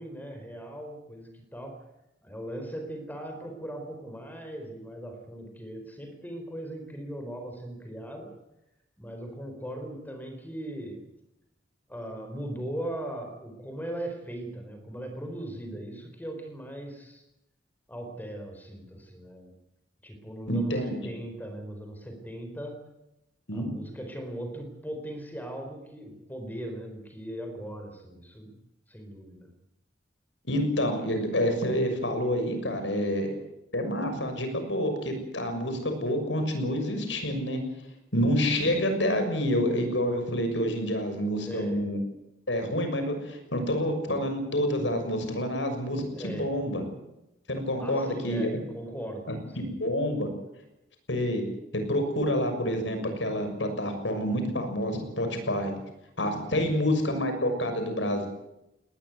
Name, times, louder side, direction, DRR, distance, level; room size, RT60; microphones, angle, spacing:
voice 1, 0.0-1.8 2.2-8.3 9.0-11.1 11.9-17.2 17.9-19.5 20.0-22.8 23.5-28.5 28.9-29.5 41.4-41.8 46.1-46.6 47.8-49.3 49.6-49.8 56.5-56.8, right 1 dB, 10° left, 5 dB, 4.4 m, -39 dB
voice 2, 20.5-21.0 23.5-23.7 30.4-33.3 33.7-37.6 38.1-42.0 42.5-46.8 47.5-48.5 49.6-50.3 51.1-51.4 51.7-55.7 56.2-58.3, equal, 85° left, 6 dB, 6.6 m, -28 dB
20.0 x 19.5 x 9.5 m, 0.89 s
head